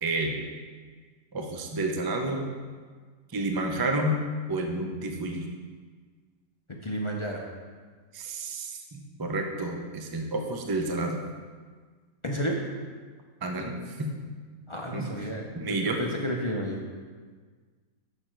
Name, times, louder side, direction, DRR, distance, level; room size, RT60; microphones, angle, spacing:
voice 1, 0.0-0.5 1.3-2.5 3.3-4.2 4.5-5.5 8.1-11.2 13.4-14.1 14.9-15.3 15.5-16.0, right 2 dB, 35° right, 3 dB, 0.3 m, -30 dB
voice 2, 6.8-7.4 12.2-12.6 14.7-15.5 16.0-16.8, equal, 45° left, -1 dB, 0.4 m, -31 dB
6.9 x 6.3 x 4.5 m, 1.5 s
omnidirectional pair, 1.6 m